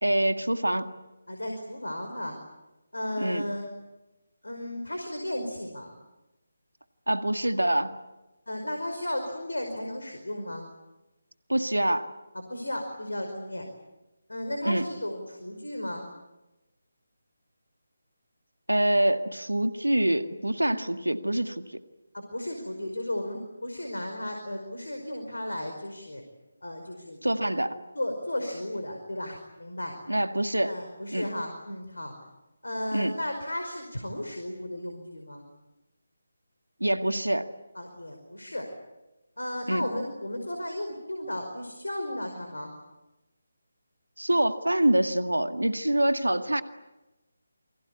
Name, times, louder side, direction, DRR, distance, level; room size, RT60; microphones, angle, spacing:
voice 1, 0.0-0.9 3.2-3.4 7.1-7.9 11.5-12.1 14.6-14.9 18.7-21.8 27.2-27.7 30.1-30.8 31.1-31.3 32.9-33.1 36.8-37.5 39.7-39.9 44.2-46.6, right 1 dB, 80° right, 9 dB, 1.9 m, -25 dB
voice 2, 1.3-2.4 2.9-3.7 4.4-6.0 8.5-10.7 12.5-13.7 14.3-16.1 22.1-26.2 26.6-27.4 28.0-29.9 30.6-32.1 32.6-35.4 37.8-38.7 39.4-42.7, left 1 dB, 75° left, 4 dB, 5.1 m, -34 dB
28.5 x 24.0 x 8.4 m, 1.0 s
figure-of-eight pair, 155°, 0 cm